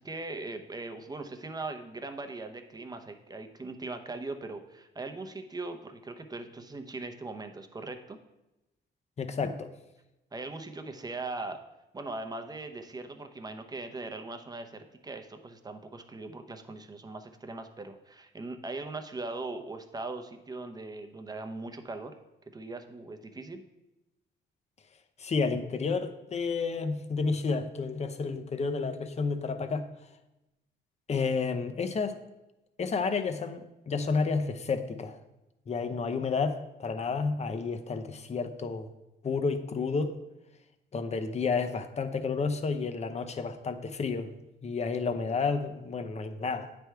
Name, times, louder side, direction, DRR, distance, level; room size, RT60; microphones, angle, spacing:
voice 1, 0.0-8.2 10.3-11.6 11.9-22.1 22.5-23.6, right 3 dB, 20° right, 7 dB, 0.7 m, -40 dB
voice 2, 9.2-9.7 25.2-29.9 31.1-32.2 32.8-35.2 35.7-38.9 39.2-40.2 40.9-46.7, left 4 dB, 35° left, 8 dB, 0.6 m, -31 dB
8.9 x 3.4 x 4.6 m, 0.96 s
cardioid pair, 90°, 20 cm